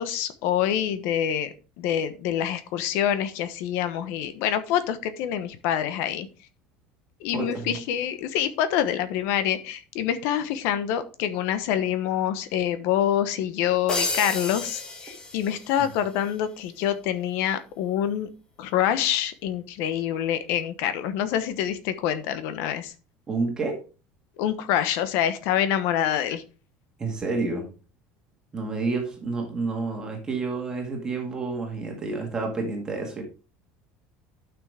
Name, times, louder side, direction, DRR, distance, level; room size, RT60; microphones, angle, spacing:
voice 1, 0.0-1.5 1.8-6.3 7.2-18.3 18.6-22.9 24.4-26.4, left 10 dB, 60° left, 12 dB, 1.1 m, -26 dB
voice 2, 7.3-7.8 15.8-15.9 23.3-23.8 27.0-27.7 28.5-33.2, right 3 dB, 15° right, 1 dB, 2.0 m, -29 dB
sound 1, 13.9-16.0, left 2 dB, 15° left, 1.4 m, -31 dB
12.0 x 6.2 x 3.5 m, 0.34 s
cardioid pair, 175°, 5 cm